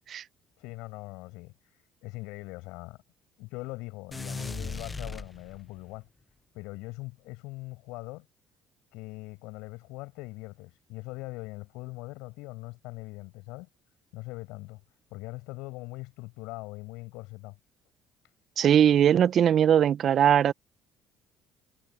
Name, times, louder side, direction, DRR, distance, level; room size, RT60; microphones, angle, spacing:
voice 1, 0.6-3.0 3.4-6.1 6.5-8.3 8.9-13.7 14.1-14.8 15.1-17.6, left 23 dB, 75° left, 7.3 m, -41 dB
sound 1, 4.1-5.9, left 3 dB, 20° left, 1.4 m, -37 dB
voice 2, 18.6-20.5, right 9 dB, 55° right, 1.4 m, -20 dB
hypercardioid pair, 55°, 0 cm